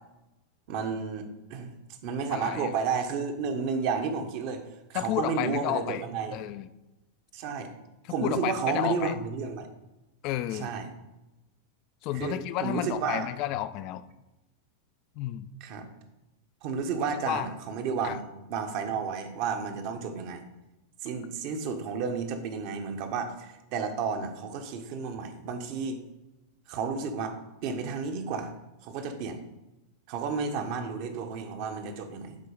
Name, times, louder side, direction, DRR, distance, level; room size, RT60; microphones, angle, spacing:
voice 1, 0.7-1.7 2.0-6.3 7.3-7.7 8.1-9.7 10.6-10.9 12.1-13.3 15.6-15.9 16.6-20.4 21.0-26.0 26.7-27.4 27.6-28.5 28.8-29.4 30.1-32.4, right 5 dB, 45° right, 6 dB, 1.1 m, -32 dB
voice 2, 2.3-2.7 4.9-6.0 6.3-6.7 8.0-9.2 10.2-10.7 12.0-14.0 15.2-15.5 17.3-17.5 18.0-18.2, left 13 dB, 40° left, 13 dB, 0.5 m, -31 dB
11.0 x 4.6 x 5.1 m, 1.0 s
figure-of-eight pair, 90°, 0 cm